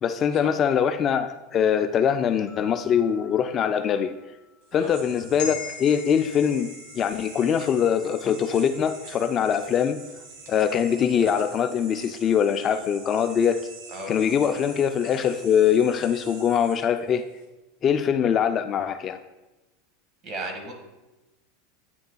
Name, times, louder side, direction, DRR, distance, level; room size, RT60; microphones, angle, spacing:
voice 1, 0.0-4.1 4.7-6.7 6.9-10.0 10.5-13.7 14.1-17.2 17.8-19.2, left 8 dB, 30° left, 9 dB, 0.3 m, -23 dB
sound 1, 2.5-5.6, left 4 dB, 5° left, 2.5 m, -53 dB
sound 2, 4.6-17.5, right 4 dB, 65° right, 1.8 m, -45 dB
sound 3, 5.4-9.9 10.3-10.4, left 7 dB, 65° left, 1.0 m, -41 dB
voice 2, 20.2-20.7, right 2 dB, 40° right, 3 dB, 1.6 m, -35 dB
9.5 x 8.9 x 2.2 m, 1.1 s
supercardioid pair, 135°, 0 cm